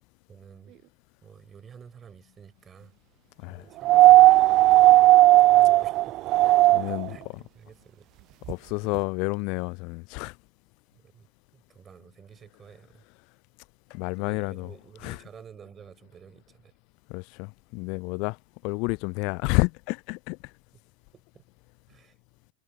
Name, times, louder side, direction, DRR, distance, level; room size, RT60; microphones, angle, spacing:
voice 1, 0.3-0.7 1.2-2.9 3.5-5.1 5.4-8.1 10.9-11.3 11.5-13.0 14.2-16.7 20.7-20.8 21.1-21.4 21.9-22.2, right 7 dB, 20° right, 5.9 m, -51 dB
sound 1, 3.8-7.1 8.5-8.6, right 17 dB, 35° right, 0.3 m, -16 dB
voice 2, 6.7-7.2 8.5-10.4 13.9-14.7 15.0-15.2 17.1-18.4 18.6-20.5, left 30 dB, 45° left, 0.3 m, -30 dB
figure-of-eight pair, 90°, 0 cm